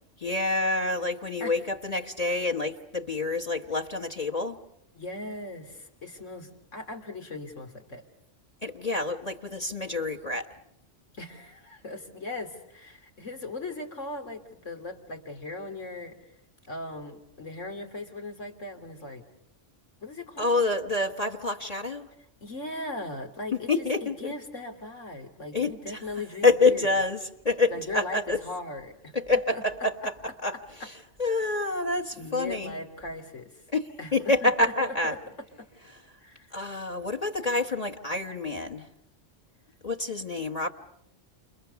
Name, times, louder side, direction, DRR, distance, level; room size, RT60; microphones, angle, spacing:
voice 1, 0.2-4.6 8.6-10.5 20.4-22.1 23.5-24.3 25.5-26.0 26.4-28.4 29.1-30.1 30.4-32.8 33.7-35.1 35.9-36.0 36.5-38.9 39.8-40.7, left 3 dB, 35° left, 7 dB, 1.4 m, -27 dB
voice 2, 4.9-8.0 11.1-16.1 16.7-19.2 20.0-20.6 22.4-27.0 27.7-29.1 29.5-29.6 31.4-31.6 32.2-33.6 34.0-35.2 35.6-35.7 36.2-36.6, left 2 dB, 90° left, 5 dB, 3.5 m, -39 dB
29.5 x 28.5 x 6.9 m, 0.76 s
omnidirectional pair, 1.3 m